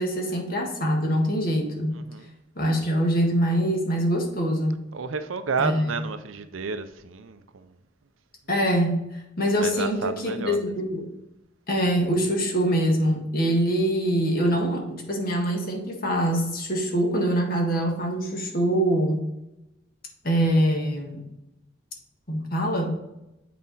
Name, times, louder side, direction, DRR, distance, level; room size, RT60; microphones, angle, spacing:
voice 1, 0.0-1.9 2.6-4.8 5.6-5.8 8.5-9.1 9.4-11.1 11.7-19.2 20.2-21.2 22.3-23.0, equal, 50° left, 1.6 m, -24 dB
voice 2, 1.9-2.3 4.9-7.7 9.6-10.6, right 5 dB, 90° right, 0.6 m, -31 dB
7.6 x 4.3 x 4.1 m
head